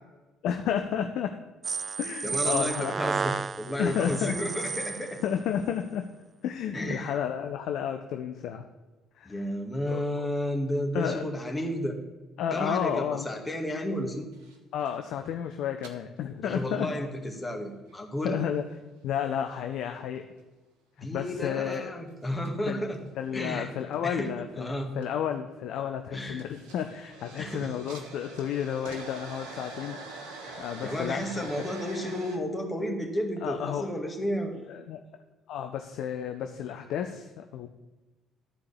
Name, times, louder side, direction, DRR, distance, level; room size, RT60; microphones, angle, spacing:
voice 1, 0.4-1.3 2.0-2.9 3.8-4.4 5.2-6.0 6.4-8.6 9.1-9.4 9.9-10.3 10.9-11.3 12.4-13.3 14.7-16.9 18.2-18.6 19.0-20.2 21.0-21.9 22.7-22.8 23.1-31.7 33.4-33.9 34.7-35.0 35.5-37.7, left 9 dB, 55° left, 6 dB, 0.6 m, -32 dB
sound 1, 1.6-5.2, right 5 dB, 35° right, 0.3 m, -32 dB
voice 2, 2.2-5.2 6.7-7.1 9.2-12.0 12.5-14.3 16.4-18.4 21.0-23.0 23.3-23.7 24.0-24.9 26.1-26.4 27.4-27.7 30.4-34.5, equal, 15° left, 1 dB, 2.1 m, -32 dB
sound 2, 14.3-15.1 15.8-15.9 17.1-17.4 17.9-18.0 18.5-19.3 19.7-20.4 21.7-21.8 22.4-22.5 22.9-23.9 25.0-25.3 25.8-25.9 26.2-32.4, right 3 dB, 65° right, 1.3 m, -44 dB
13.0 x 4.8 x 8.6 m, 1.2 s
figure-of-eight pair, 50°, 0 cm